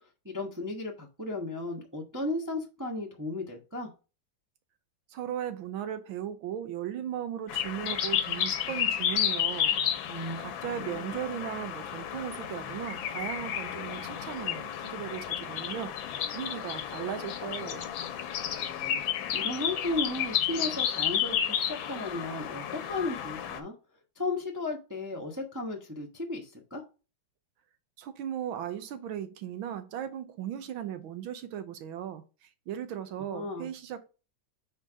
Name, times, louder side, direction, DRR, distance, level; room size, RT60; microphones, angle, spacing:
voice 1, 0.2-3.9 10.1-10.4 11.1-11.2 18.6-19.0 19.3-23.7 24.2-26.8 33.3-33.7, left 2 dB, 15° right, 0.6 m, -35 dB
voice 2, 5.1-9.8 10.4-17.9 28.0-34.1, right 10 dB, 80° right, 1.6 m, -37 dB
sound 1, 7.5-23.6, left 9 dB, 75° left, 1.5 m, -32 dB
4.6 x 4.4 x 4.9 m
omnidirectional pair, 2.2 m